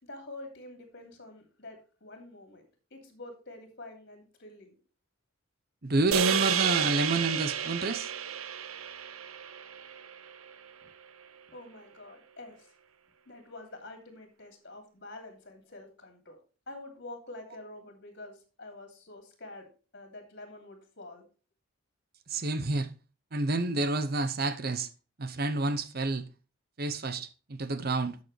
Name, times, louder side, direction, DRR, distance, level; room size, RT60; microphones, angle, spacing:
voice 1, 0.0-2.6 2.9-4.7 11.5-12.7 13.3-16.4 16.7-19.7 19.9-21.3, left 2 dB, 50° left, 2.8 m, -47 dB
voice 2, 5.8-8.1 22.3-22.9 23.3-24.9 25.2-26.3 26.8-28.2, right 2 dB, 45° right, 0.8 m, -29 dB
sound 1, 6.1-10.5, right 8 dB, 80° right, 0.8 m, -31 dB
11.5 x 6.7 x 3.2 m
head